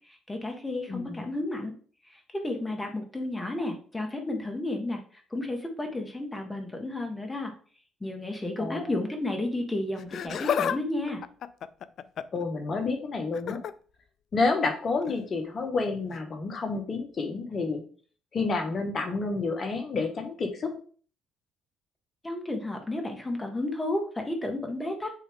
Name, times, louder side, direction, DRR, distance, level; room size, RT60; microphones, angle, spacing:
voice 1, 0.1-1.7 2.1-5.0 5.3-7.5 8.0-11.2 22.2-25.1, left 2 dB, 15° left, 3 dB, 1.7 m, -32 dB
voice 2, 0.9-1.3 8.6-8.9 12.3-13.6 14.3-17.8 18.3-20.7, left 3 dB, 45° left, 5 dB, 1.6 m, -29 dB
Laughter, 10.0-10.8 11.1-12.4 13.3-13.7 15.0-15.2 16.1-16.2, left 8 dB, 60° left, 0.3 m, -31 dB
8.2 x 3.1 x 3.7 m, 0.43 s
supercardioid pair, 70°, 0 cm